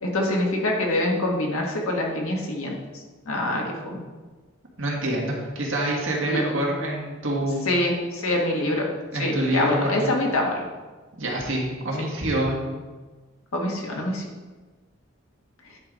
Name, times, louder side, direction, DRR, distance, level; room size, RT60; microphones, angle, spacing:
voice 1, 0.0-2.7 3.3-4.0 6.3-6.4 7.6-8.8 9.2-10.6 13.5-14.2, left 1 dB, 85° left, 0 dB, 1.5 m, -25 dB
voice 2, 4.8-7.7 9.1-10.1 11.2-12.8, right 1 dB, 65° right, -3 dB, 1.9 m, -26 dB
9.7 x 4.8 x 4.0 m, 1.3 s
head